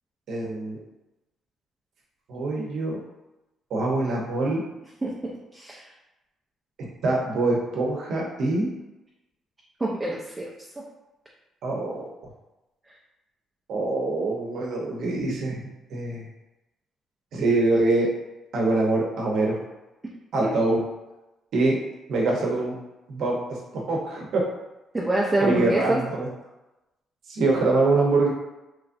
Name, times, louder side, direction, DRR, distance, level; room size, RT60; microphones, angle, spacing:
voice 1, 0.3-0.8 2.3-3.0 3.7-4.6 7.0-8.7 11.6-12.0 13.7-16.3 17.3-18.1 18.5-19.6 20.3-20.8 21.5-21.8 22.1-22.8 23.1-23.4 23.7-24.5 25.4-26.3 27.3-28.3, right 2 dB, 75° right, -2 dB, 0.7 m, -24 dB
voice 2, 5.5-5.9 9.8-10.5 10.8-10.9 20.4-20.5 24.9-26.0, right 1 dB, 20° right, -4 dB, 0.5 m, -26 dB
3.0 x 2.5 x 2.5 m, 0.99 s
cardioid pair, 90°, 0 cm